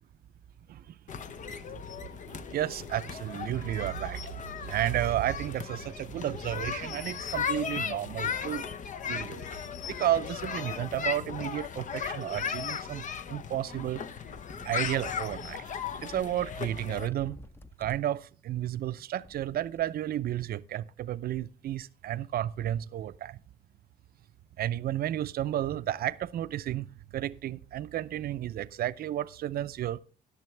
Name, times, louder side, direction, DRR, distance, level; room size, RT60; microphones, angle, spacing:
sound 1, 1.1-17.1, left 7 dB, 50° left, 0.7 m, -37 dB
voice 1, 1.5-1.8 2.3-4.2 4.6-8.7 9.1-9.5 9.9-14.0 14.6-15.7 16.0-17.4 17.8-23.4 24.6-26.9 27.1-30.0, right 12 dB, 65° right, 0.5 m, -32 dB
sound 2, 14.5-15.6 16.7-16.8 16.9-18.1 19.0-19.9, left 1 dB, 15° left, 0.7 m, -50 dB
18.0 x 6.7 x 3.3 m
cardioid pair, 90°, 17 cm